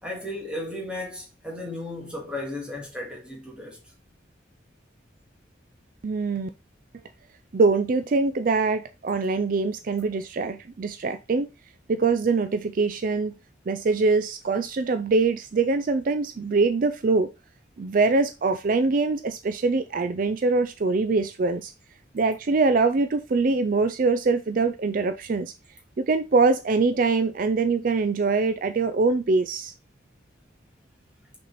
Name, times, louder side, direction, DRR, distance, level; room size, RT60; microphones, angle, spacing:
voice 1, 0.0-3.8, left 1 dB, 5° right, 2.2 m, -35 dB
voice 2, 6.0-6.5 7.5-11.5 11.9-13.3 13.7-17.3 17.8-21.7 22.1-25.5 26.0-29.7, right 3 dB, 45° right, 0.4 m, -23 dB
6.1 x 4.3 x 4.2 m
head